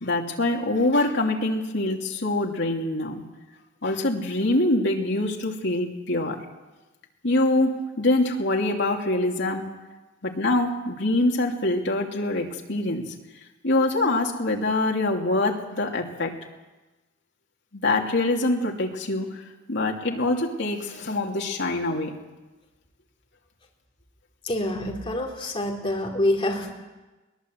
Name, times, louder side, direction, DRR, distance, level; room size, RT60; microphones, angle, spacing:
voice 1, 0.0-3.2 3.8-6.4 7.2-9.6 10.2-13.0 13.6-16.3 17.7-19.4 19.7-22.1, left 2 dB, 60° left, 1 dB, 2.8 m, -24 dB
voice 2, 24.4-26.7, left 1 dB, 25° left, -1 dB, 3.4 m, -26 dB
22.5 x 19.0 x 8.1 m, 1.1 s
head